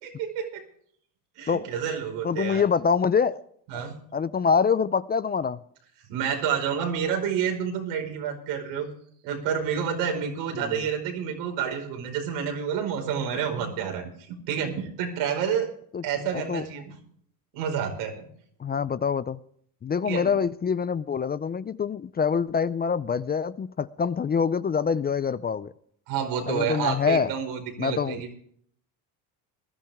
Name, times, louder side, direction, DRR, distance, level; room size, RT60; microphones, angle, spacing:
voice 1, 0.0-0.6 1.4-2.6 3.7-4.0 6.1-8.9 9.2-15.7 16.0-16.9 17.5-18.2 20.1-20.3 26.1-28.3, right 7 dB, 85° right, 3 dB, 5.0 m, -29 dB
voice 2, 2.2-3.4 3.7-3.8 4.1-5.6 10.5-10.9 15.9-16.0 16.3-16.7 18.6-19.4 19.8-25.7 26.5-27.3 27.8-28.3, left 6 dB, 25° left, 16 dB, 0.5 m, -25 dB
20.5 x 13.0 x 3.5 m, 0.62 s
cardioid pair, 115°, 42 cm